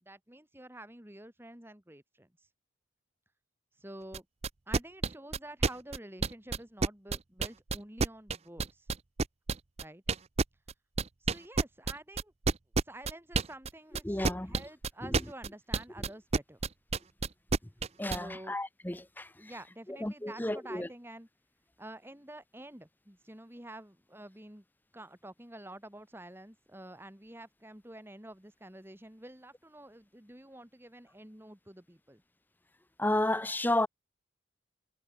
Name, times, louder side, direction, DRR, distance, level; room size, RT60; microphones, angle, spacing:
voice 1, 0.0-2.5 3.8-4.3 4.7-8.9 9.8-10.0 11.3-12.3 12.8-16.6 18.2-18.6 19.4-21.3 21.8-24.6 24.9-32.2, right 1 dB, 10° right, 2.1 m, -49 dB
sound 1, 4.1-18.2, right 4 dB, 30° right, 0.6 m, -29 dB
voice 2, 14.0-14.6 15.0-15.2 18.0-19.5 19.9-20.9 33.0-33.9, left 1 dB, 10° left, 0.8 m, -32 dB
head